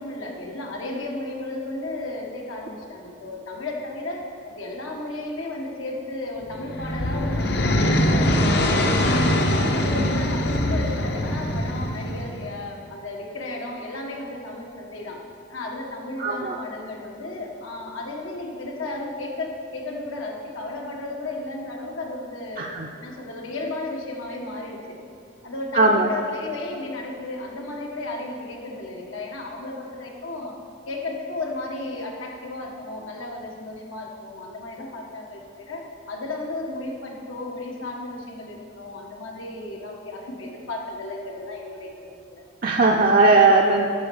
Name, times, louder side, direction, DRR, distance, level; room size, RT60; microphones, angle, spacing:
voice 1, 0.0-9.1 9.5-15.2 15.5-22.7 23.0-25.0 25.4-30.5 30.9-42.4, left 2 dB, 85° left, 0 dB, 1.5 m, -34 dB
sound 1, 6.5-12.6, left 1 dB, 55° left, 0.7 m, -22 dB
voice 2, 16.2-16.5 22.6-22.9 25.8-26.1 42.6-43.9, right 3 dB, 45° right, 0 dB, 0.5 m, -18 dB
11.5 x 4.3 x 7.0 m, 2.6 s
head